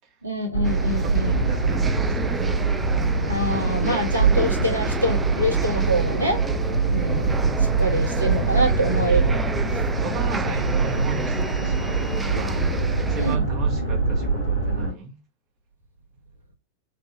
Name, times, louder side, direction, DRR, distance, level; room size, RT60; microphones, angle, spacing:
voice 1, 0.2-1.4 3.3-6.4 6.9-7.3 7.6-9.4 13.2-13.4, equal, 80° right, 1.2 m, -25 dB
sound 1, 0.5-14.9, right 4 dB, 80° left, 2.3 m, -24 dB
sound 2, 0.6-13.4, right 3 dB, 15° right, 0.3 m, -31 dB
voice 2, 1.0-2.6 4.1-4.5 10.0-12.6 13.0-15.2, right 4 dB, 40° right, 1.0 m, -35 dB
sound 3, 6.7-14.3, left 3 dB, 35° left, 1.1 m, -36 dB
4.4 x 2.6 x 2.9 m
figure-of-eight pair, 90°, 0 cm